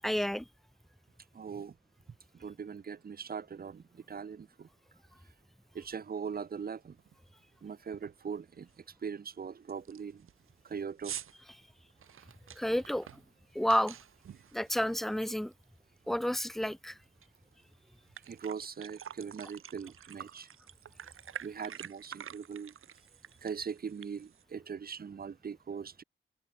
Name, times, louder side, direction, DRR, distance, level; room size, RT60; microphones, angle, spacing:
voice 1, 0.0-0.4 12.6-13.1 13.5-14.0 14.5-15.5 16.1-17.0, equal, ahead, 0.6 m, -30 dB
voice 2, 1.3-1.7 2.3-4.7 5.7-7.0 7.6-8.7 9.0-10.3 10.6-11.2 18.3-20.5 21.4-22.7 23.4-26.0, right 6 dB, 45° right, 1.1 m, -40 dB
sound 1, 6.3-6.4 6.8-7.1 7.4-7.5 7.9-8.3 8.7-8.8 9.3-9.4 9.7-15.6 16.0-17.3 17.6-17.7 18.0-24.4, right 9 dB, 85° right, 1.2 m, -48 dB
open air
wide cardioid pair, 135°, 21 cm